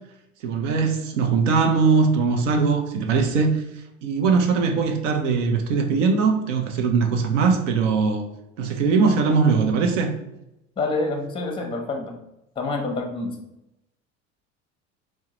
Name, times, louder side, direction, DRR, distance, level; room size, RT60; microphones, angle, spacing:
voice 1, 0.4-3.6 4.0-8.3 8.6-10.1, right 5 dB, 70° right, 4 dB, 0.7 m, -21 dB
voice 2, 10.8-12.1 12.6-13.4, left 3 dB, 15° left, 3 dB, 0.7 m, -27 dB
4.5 x 2.1 x 2.9 m, 0.88 s
hypercardioid pair, 70°, 38 cm